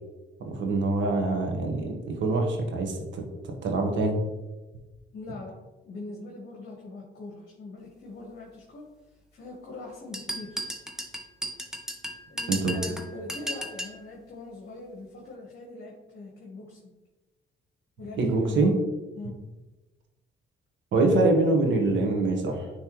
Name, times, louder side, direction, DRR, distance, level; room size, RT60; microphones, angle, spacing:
voice 1, 0.4-4.2 12.5-12.8 18.2-18.7 20.9-22.7, right 2 dB, 70° right, 2 dB, 1.3 m, -25 dB
voice 2, 5.1-5.5 5.8-8.8 9.3-10.6 12.3-16.9 18.0-18.7 19.1-19.3, left 3 dB, 55° left, -1 dB, 1.3 m, -42 dB
sound 1, 10.1-14.0, equal, 5° right, 0.8 m, -35 dB
9.6 x 3.3 x 3.0 m, 1.1 s
cardioid pair, 90°, 20 cm